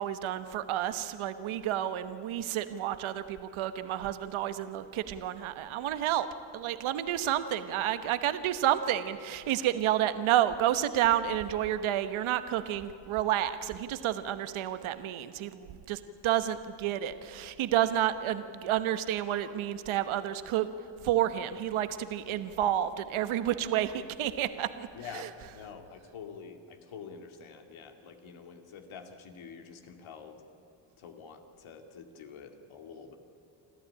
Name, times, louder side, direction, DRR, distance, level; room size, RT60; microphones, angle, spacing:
voice 1, 0.0-6.3 6.5-20.7 21.0-25.3, right 11 dB, 80° right, 11 dB, 1.2 m, -30 dB
voice 2, 24.9-30.4 31.0-33.2, left 6 dB, 80° left, 5 dB, 2.5 m, -47 dB
26.5 x 14.0 x 9.9 m, 3.0 s
cardioid pair, 95°, 48 cm